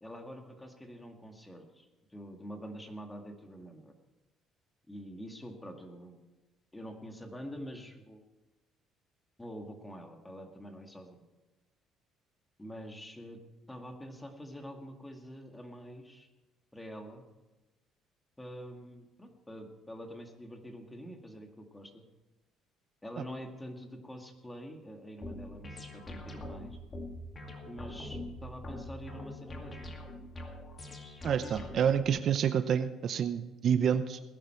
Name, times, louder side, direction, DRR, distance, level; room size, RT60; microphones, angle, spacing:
voice 1, 0.0-3.9 4.9-6.2 6.7-8.2 9.4-11.3 12.6-13.4 13.7-16.3 16.7-17.2 18.4-22.0 23.0-26.8 27.6-29.9, equal, 10° left, 4 dB, 2.0 m, -46 dB
sound 1, 25.2-32.1, left 1 dB, 30° left, 2.3 m, -43 dB
voice 2, 31.2-34.2, right 8 dB, 50° right, 11 dB, 0.7 m, -28 dB
19.0 x 11.0 x 4.5 m, 1.1 s
cardioid pair, 115°, 0 cm